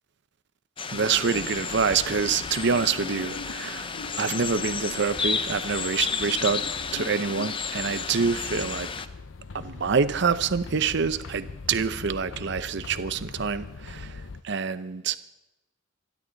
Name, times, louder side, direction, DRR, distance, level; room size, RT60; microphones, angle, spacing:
sound 1, 0.8-9.1, left 5 dB, 25° left, 0.7 m, -32 dB
sound 2, 0.9-14.4, left 4 dB, 90° left, 0.6 m, -41 dB
voice 1, 0.9-3.9 4.2-6.6 6.9-8.9 9.5-15.2, right 5 dB, 65° right, 0.7 m, -26 dB
28.5 x 10.5 x 3.9 m
head